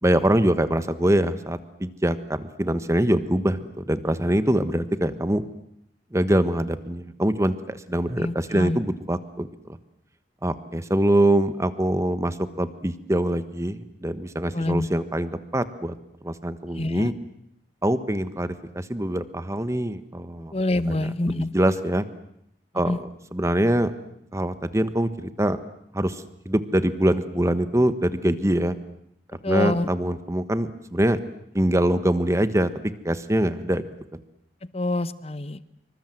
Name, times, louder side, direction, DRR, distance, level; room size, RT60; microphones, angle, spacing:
voice 1, 0.0-5.4 6.1-9.5 10.4-15.9 16.2-17.1 17.8-20.5 20.9-22.0 22.7-23.0 23.3-23.9 24.3-25.6 25.9-28.8 29.5-31.2 31.5-32.7 33.0-33.8 34.1-34.2, right 1 dB, 15° right, 12 dB, 1.4 m, -24 dB
voice 2, 8.2-8.8 14.5-14.9 16.7-17.1 20.5-21.5 22.8-23.0 29.4-29.9 34.7-35.6, left 2 dB, 35° left, 15 dB, 1.0 m, -26 dB
26.5 x 25.0 x 7.8 m, 0.75 s
head